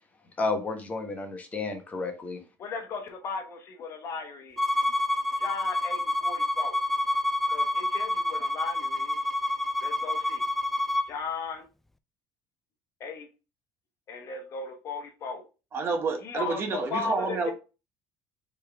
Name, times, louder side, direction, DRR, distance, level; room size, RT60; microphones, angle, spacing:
voice 1, 0.4-2.4, left 3 dB, 25° left, 1.1 m, -31 dB
voice 2, 2.6-4.6 5.4-6.8 7.5-9.2 9.8-10.4 11.1-11.7 13.0-13.3 14.1-15.5 16.2-17.5, left 5 dB, 45° left, 1.1 m, -36 dB
Bowed string instrument, 4.6-11.1, left 1 dB, 5° left, 0.3 m, -28 dB
voice 3, 15.7-17.5, right 4 dB, 35° right, 1.0 m, -29 dB
4.4 x 3.4 x 3.5 m
cardioid pair, 120°, 7 cm